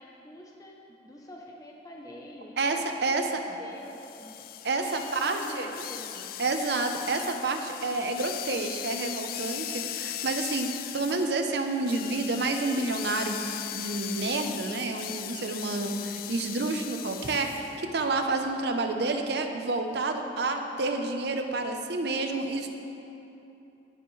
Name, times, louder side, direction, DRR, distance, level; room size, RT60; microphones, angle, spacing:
voice 1, 0.0-4.5 4.8-5.0 5.2-6.3, left 1 dB, 20° left, -1 dB, 0.8 m, -46 dB
voice 2, 2.6-3.4 4.6-5.7 6.4-13.4 13.7-22.7, right 3 dB, 65° right, 5 dB, 0.8 m, -29 dB
sound 1, 3.9-17.8, left 12 dB, 55° left, 0.3 m, -38 dB
20.5 x 7.0 x 3.2 m, 2.9 s
head